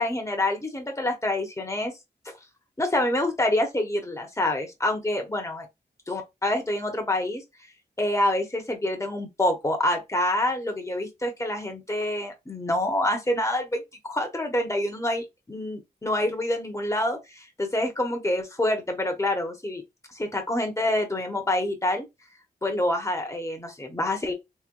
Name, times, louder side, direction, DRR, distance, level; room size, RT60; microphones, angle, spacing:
voice 1, 0.0-1.9 2.8-5.7 6.1-7.4 8.0-19.8 20.1-22.0 22.6-24.3, left 1 dB, 15° left, 1.2 m, -27 dB
3.2 x 3.1 x 2.2 m
wide cardioid pair, 80°, 17 cm